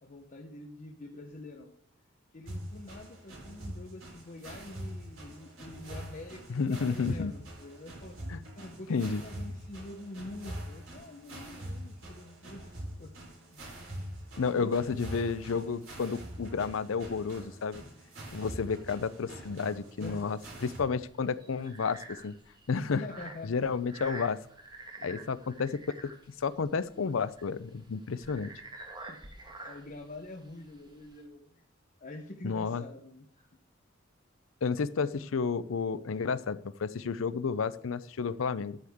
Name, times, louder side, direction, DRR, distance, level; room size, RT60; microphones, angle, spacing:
voice 1, 0.0-1.8 2.3-13.1 13.5-14.7 20.0-20.3 22.9-23.7 25.0-25.4 29.1-31.7 32.0-33.5, left 2 dB, 40° left, 2 dB, 0.9 m, -46 dB
sound 1, 2.4-20.8, right 1 dB, 70° right, 4.0 m, -44 dB
voice 2, 6.5-7.3 8.3-8.4 8.9-9.2 14.4-17.8 18.3-22.4 22.7-23.0 23.4-24.4 25.0-26.1 26.4-28.5 32.4-32.8 34.6-38.8, left 5 dB, 80° left, 15 dB, 0.5 m, -31 dB
sound 2, 18.6-31.2, right 2 dB, 20° right, 1.5 m, -49 dB
13.0 x 7.9 x 3.6 m, 0.68 s
head